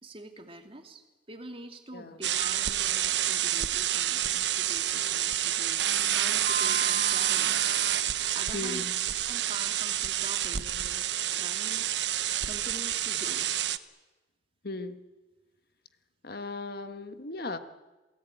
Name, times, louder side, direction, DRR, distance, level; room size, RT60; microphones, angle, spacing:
voice 1, 0.0-5.9 6.1-7.7 8.3-8.9 9.2-11.1 11.3-12.2 12.4-13.5, right 2 dB, 35° right, 5 dB, 2.6 m, -45 dB
sound 1, 2.2-13.8, right 11 dB, 85° right, 1.0 m, -28 dB
sound 2, 6.5-9.0, right 2 dB, 55° right, 1.1 m, -38 dB
voice 2, 8.5-8.9 14.6-15.0 16.2-17.6, left 2 dB, 60° left, 9 dB, 1.4 m, -37 dB
28.0 x 18.0 x 9.1 m, 1.2 s
head